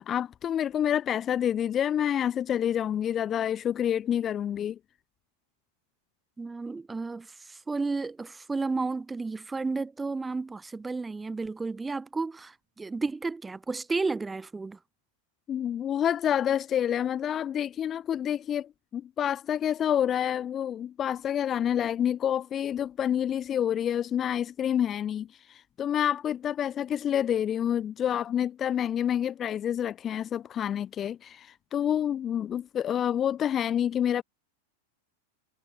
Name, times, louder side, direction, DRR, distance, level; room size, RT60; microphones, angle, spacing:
voice 1, 0.0-4.8 15.5-34.2, left 9 dB, 30° left, 0.5 m, -28 dB
voice 2, 6.4-14.8, right 3 dB, 10° right, 0.9 m, -32 dB
hypercardioid pair, 120°, 0 cm